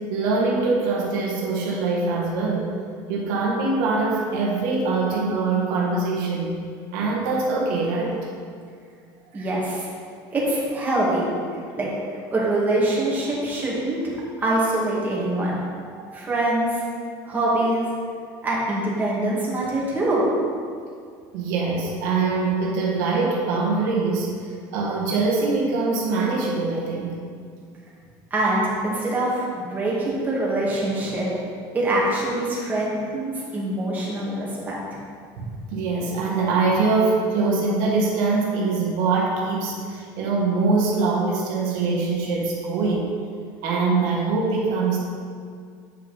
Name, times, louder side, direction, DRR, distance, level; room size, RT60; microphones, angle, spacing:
voice 1, 0.1-2.7 3.1-6.5 6.9-8.2 9.3-9.5 16.0-16.1 17.0-17.1 21.3-27.2 33.4-33.5 35.4-43.1 43.6-45.0, right 3 dB, 85° right, -3 dB, 1.5 m, -23 dB
voice 2, 9.3-9.9 10.3-11.3 11.8-11.9 12.3-14.1 14.4-15.6 16.1-16.7 17.2-18.0 18.4-20.2 28.3-31.3 31.7-34.8, right 1 dB, 15° right, -7 dB, 2.2 m, -24 dB
8.7 x 5.5 x 4.4 m, 2.2 s
cardioid pair, 140°, 10 cm